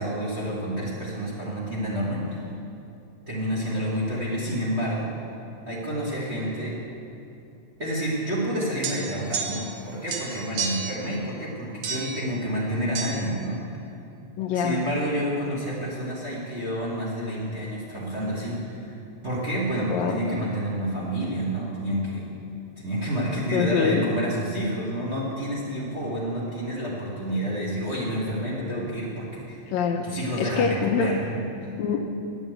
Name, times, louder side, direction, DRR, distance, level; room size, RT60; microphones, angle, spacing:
voice 1, 0.0-2.4 3.3-5.1 5.7-6.8 7.8-13.6 14.5-19.0 19.2-22.3 22.8-29.6 30.0-31.7, right 1 dB, 30° right, -6 dB, 1.2 m, -29 dB
sound 1, 8.8-9.8 10.1-11.0 11.8-12.2 12.9-13.1, right 5 dB, 60° right, 1.8 m, -31 dB
voice 2, 14.4-14.8 19.9-20.2 23.5-24.1 29.7-30.1 30.4-31.1 31.8-32.0, left 6 dB, 75° left, 4 dB, 1.8 m, -24 dB
10.0 x 7.2 x 7.9 m, 2.8 s
omnidirectional pair, 3.5 m